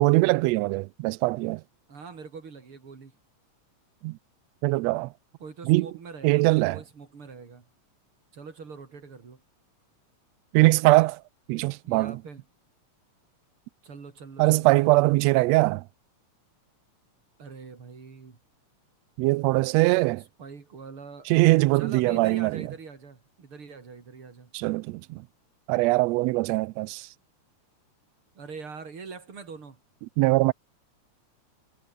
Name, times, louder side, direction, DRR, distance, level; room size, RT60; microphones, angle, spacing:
voice 1, 0.0-1.6 4.0-4.2 4.6-5.1 5.6-5.9 6.2-6.8 10.5-11.2 11.5-12.1 14.4-15.8 19.2-20.2 21.3-22.6 24.5-25.2 25.7-27.1 30.2-30.5, right 21 dB, 80° right, 1.6 m, -21 dB
voice 2, 1.9-3.1 5.4-7.7 8.3-9.4 11.8-12.4 13.8-14.7 17.4-18.4 20.4-21.3 21.7-24.5 28.4-29.8, right 5 dB, 45° right, 3.9 m, -43 dB
omnidirectional pair, 3.3 m